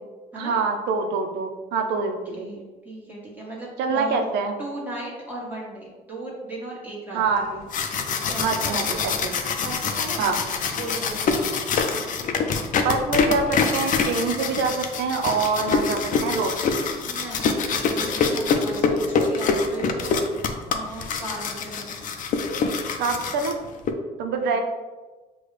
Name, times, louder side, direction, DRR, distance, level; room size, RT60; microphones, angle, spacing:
voice 1, 0.3-2.5 3.8-4.5 7.1-7.4 8.4-9.0 9.2-9.4 10.2-10.4 12.8-16.9 23.0-23.5 24.2-24.6, right 4 dB, 85° right, 5 dB, 0.6 m, -25 dB
voice 2, 2.3-4.2 4.6-7.6 8.3-9.1 9.6-10.3 10.7-11.1 17.0-20.2 20.7-22.0 24.4-24.6, right 2 dB, 10° right, -5 dB, 1.2 m, -36 dB
sound 1, 7.5-23.9, left 5 dB, 50° left, 0.5 m, -25 dB
6.2 x 2.3 x 3.2 m, 1.3 s
cardioid pair, 110°, 17 cm